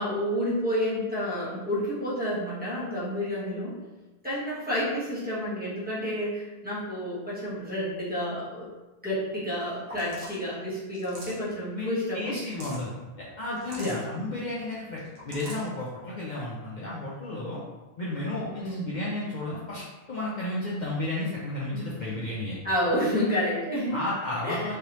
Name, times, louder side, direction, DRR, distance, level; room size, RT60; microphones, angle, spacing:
voice 1, 0.0-3.7 4.2-8.7 9.0-12.4 13.8-14.0 18.6-18.9 21.7-21.9 22.6-24.0 24.4-24.8, equal, 10° right, -11 dB, 1.1 m, -30 dB
sound 1, 9.9-10.4 10.9-11.5 12.3-12.9 13.6-14.0 15.0-15.7, right 1 dB, 65° right, 1.0 m, -43 dB
voice 2, 11.7-12.9 13.2-17.6 18.0-22.6 23.9-24.8, left 2 dB, 55° left, -6 dB, 0.6 m, -33 dB
3.3 x 2.7 x 2.9 m, 1.1 s
omnidirectional pair, 1.1 m